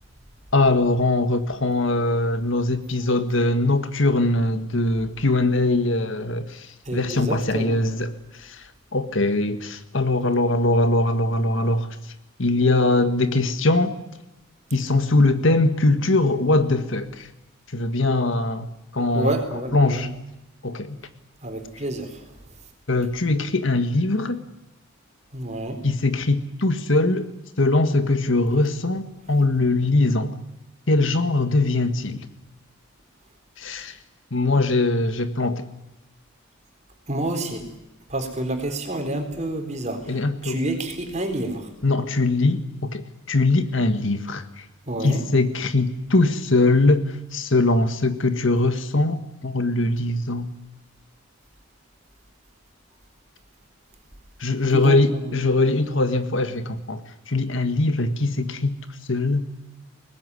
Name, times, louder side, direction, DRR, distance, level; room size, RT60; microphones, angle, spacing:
voice 1, 0.5-8.6 8.9-11.9 12.4-13.9 14.7-17.3 17.7-18.7 18.9-19.3 19.7-20.1 20.6-21.0 22.9-24.4 25.8-27.3 27.6-30.3 30.9-32.3 33.6-34.0 34.3-35.6 40.1-40.6 41.8-44.6 45.0-50.5 54.4-57.0 57.3-58.8 59.1-59.5, left 2 dB, 65° left, 1.7 m, -21 dB
voice 2, 6.8-7.8 19.1-20.0 21.4-22.3 25.3-25.8 37.1-37.7 38.1-41.7 44.9-45.2 54.7-55.4, right 1 dB, 35° right, 4.2 m, -29 dB
22.5 x 19.5 x 9.9 m
head